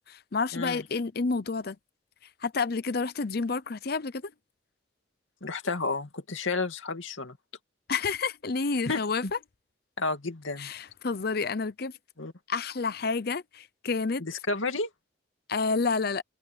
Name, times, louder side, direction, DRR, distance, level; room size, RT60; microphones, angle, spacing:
voice 1, 0.1-1.8 2.4-4.3 7.9-9.2 10.6-11.9 12.5-14.2 15.5-16.2, left 4 dB, 50° left, 0.6 m, -29 dB
voice 2, 5.4-7.4 8.9-9.3 10.0-10.7 12.2-12.3 14.2-14.9, left 3 dB, 80° left, 2.4 m, -31 dB
head